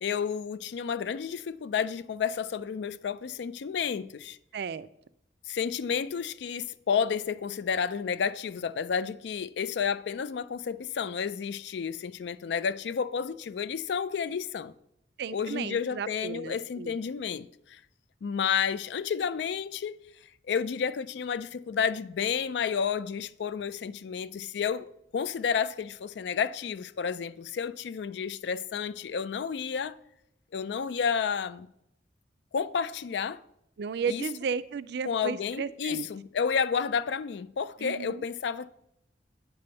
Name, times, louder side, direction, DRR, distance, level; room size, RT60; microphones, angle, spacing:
voice 1, 0.0-4.4 5.5-14.7 15.3-17.8 18.2-20.0 20.5-30.0 30.5-31.7 32.5-33.4 34.1-34.2 35.1-38.7, left 6 dB, 70° left, 0.4 m, -31 dB
voice 2, 4.5-4.9 15.2-17.0 33.8-36.1 37.8-38.2, right 6 dB, 65° right, 0.4 m, -34 dB
9.0 x 3.5 x 6.7 m
head